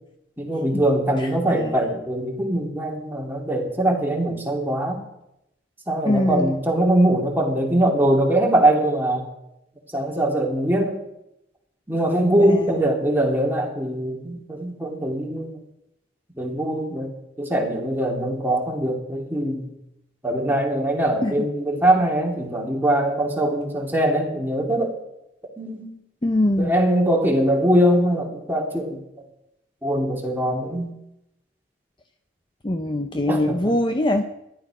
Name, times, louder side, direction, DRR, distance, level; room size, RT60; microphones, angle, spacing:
voice 1, 0.4-5.0 5.9-9.3 9.9-11.0 11.9-15.6 16.3-17.1 17.4-19.7 20.2-25.0 25.6-25.9 26.6-29.0 29.8-30.9 33.3-33.7, right 1 dB, 10° right, -1 dB, 2.7 m, -22 dB
voice 2, 1.2-1.8 6.0-6.5 12.4-12.8 21.2-21.5 26.2-26.8 32.6-34.2, left 1 dB, 25° left, 6 dB, 0.7 m, -23 dB
14.0 x 12.0 x 4.9 m, 0.83 s
head